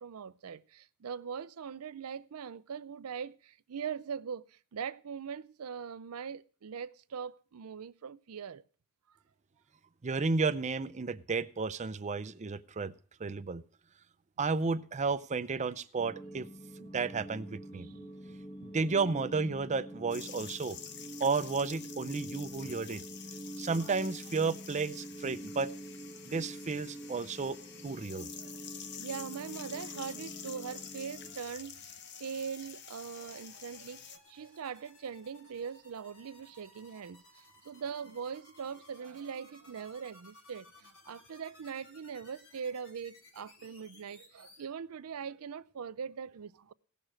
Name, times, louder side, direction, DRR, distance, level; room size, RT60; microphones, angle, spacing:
voice 1, 0.0-8.6 17.8-18.1 22.6-22.8 23.8-23.9 28.4-46.7, right 6 dB, 85° right, 0.5 m, -42 dB
voice 2, 10.0-12.9 13.2-13.6 14.4-16.5 16.8-17.9 18.6-20.8 21.2-23.0 23.6-25.7 26.3-27.6 27.8-28.3, right 4 dB, 35° right, 0.6 m, -32 dB
sound 1, 16.0-31.4, right 1 dB, 30° left, 1.3 m, -46 dB
sound 2, 20.1-34.2, left 8 dB, 55° left, 0.8 m, -48 dB
sound 3, 26.1-44.6, left 2 dB, 75° left, 4.2 m, -60 dB
17.0 x 6.6 x 6.2 m
head